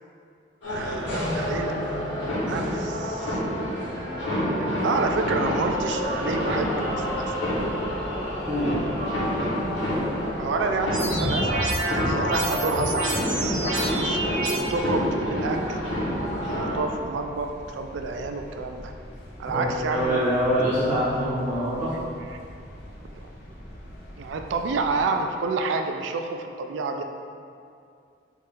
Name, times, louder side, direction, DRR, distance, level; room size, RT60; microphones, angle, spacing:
sound 1, 0.6-16.8, equal, 85° left, 1.0 m, -28 dB
voice 1, 0.7-3.4 4.6-7.3 10.4-13.1 14.0-15.8 16.4-18.9 19.4-20.2 23.1-23.2 24.2-27.0, right 3 dB, 80° right, 5 dB, 0.3 m, -29 dB
sound 2, 5.8-25.0, equal, 55° left, 0.6 m, -44 dB
sound 3, 10.9-14.5, right 1 dB, 50° right, 0.8 m, -27 dB
voice 2, 19.5-21.9, equal, 10° right, -11 dB, 1.0 m, -24 dB
4.2 x 2.4 x 3.6 m, 2.4 s
head